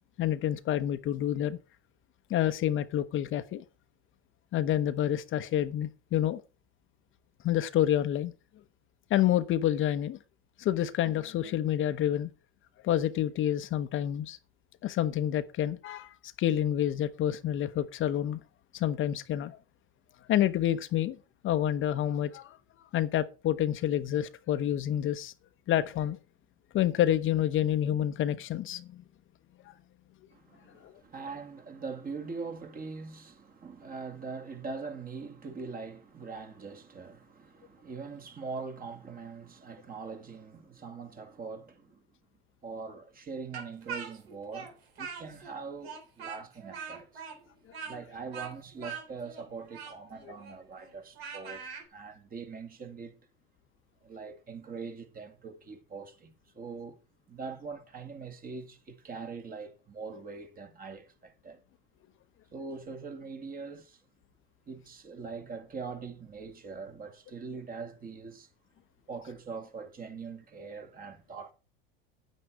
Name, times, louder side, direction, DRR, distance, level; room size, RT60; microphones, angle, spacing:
voice 1, 0.2-1.6 2.3-3.6 4.5-6.4 7.4-8.3 9.1-10.2 10.6-12.3 12.8-14.4 14.8-18.4 18.7-19.6 20.3-21.2 21.4-22.6 22.9-25.3 25.7-26.2 26.7-29.0 29.7-29.8 30.8-30.9, left 11 dB, 40° left, 1.0 m, -28 dB
voice 2, 30.3-42.0 42.6-47.3 47.8-51.6 51.9-53.2 54.0-57.0 57.3-61.6 62.5-64.0 64.7-68.5 69.1-71.5, right 4 dB, 30° right, 2.2 m, -42 dB
Speech, 43.5-45.6 45.8-51.9, right 6 dB, 80° right, 3.8 m, -42 dB
10.0 x 9.3 x 4.6 m
hypercardioid pair, 80°, 30 cm